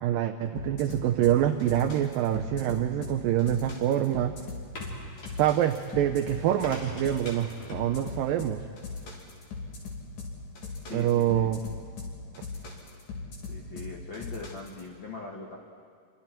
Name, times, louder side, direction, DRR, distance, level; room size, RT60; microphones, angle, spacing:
voice 1, 0.0-4.3 5.3-8.7 10.9-11.6, right 11 dB, 85° right, 7 dB, 2.0 m, -26 dB
sound 1, 0.6-14.8, left 3 dB, 50° left, 3.9 m, -39 dB
sound 2, 4.5-10.6, equal, 35° left, 3.8 m, -47 dB
voice 2, 10.9-11.5 13.4-15.6, left 3 dB, 80° left, -1 dB, 1.0 m, -41 dB
28.5 x 23.5 x 4.5 m, 2.1 s
omnidirectional pair, 4.8 m